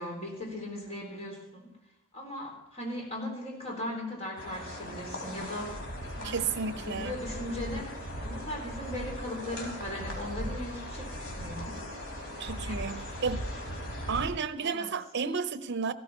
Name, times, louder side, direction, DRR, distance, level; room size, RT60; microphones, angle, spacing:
voice 1, 0.0-1.7 2.1-5.8 6.1-7.9 8.2-11.8 12.4-12.8 14.6-14.9, left 1 dB, 35° left, 4.3 m, -38 dB
sound 1, 4.4-14.3, equal, 80° left, 3.8 m, -38 dB
voice 2, 6.2-7.2 12.4-13.5 14.1-15.9, right 5 dB, 60° right, 0.7 m, -32 dB
16.0 x 13.5 x 4.4 m
head